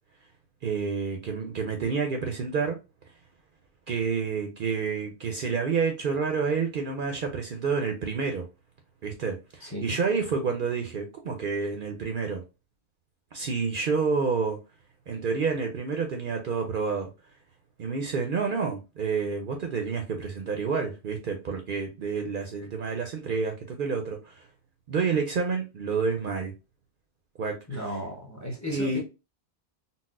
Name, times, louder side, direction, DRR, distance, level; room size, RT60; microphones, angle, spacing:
voice 1, 0.6-2.8 3.9-8.4 9.0-12.4 13.3-14.6 15.1-17.1 17.8-24.5 24.9-26.5 27.4-28.0 28.7-29.0, right 5 dB, 60° right, 0.7 m, -29 dB
voice 2, 9.6-10.0 27.7-29.0, left 1 dB, 15° left, 0.9 m, -35 dB
4.0 x 2.1 x 2.3 m
omnidirectional pair, 1.1 m